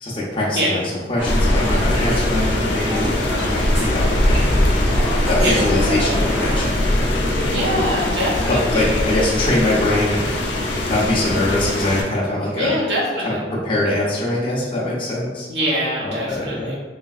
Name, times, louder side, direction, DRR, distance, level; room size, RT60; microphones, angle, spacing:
voice 1, 0.0-3.1 3.5-4.6 5.3-7.6 8.5-10.3 10.9-12.8 13.2-15.5 16.0-16.7, left 1 dB, 30° left, -6 dB, 0.5 m, -23 dB
sound 1, 1.2-6.7, equal, 10° right, 1.2 m, -27 dB
Rain, 1.3-12.0, left 1 dB, 80° left, 0.5 m, -21 dB
voice 2, 7.5-9.0 12.5-13.4 15.5-16.8, equal, 70° right, -5 dB, 0.9 m, -23 dB
3.3 x 2.4 x 2.3 m, 1.3 s
head